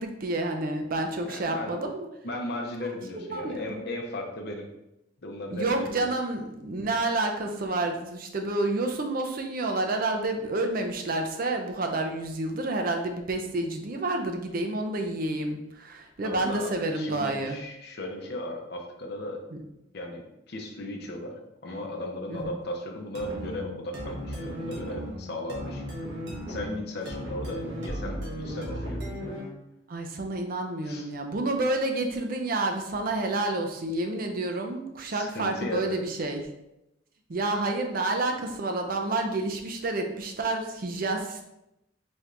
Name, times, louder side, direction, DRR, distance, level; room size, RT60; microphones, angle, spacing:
voice 1, 0.0-2.1 3.3-3.8 5.5-17.6 19.5-19.6 22.3-22.6 29.9-36.4 37.3-41.4, right 2 dB, 50° right, 4 dB, 0.5 m, -29 dB
voice 2, 1.2-1.8 2.2-4.7 5.2-6.1 16.2-16.7 16.9-19.4 19.9-25.8 26.5-29.0 30.8-31.1 35.1-36.0, left 1 dB, 60° left, 1 dB, 0.7 m, -36 dB
sound 1, 23.1-29.6, equal, 65° right, 1.0 m, -36 dB
4.2 x 3.4 x 2.5 m, 0.88 s
head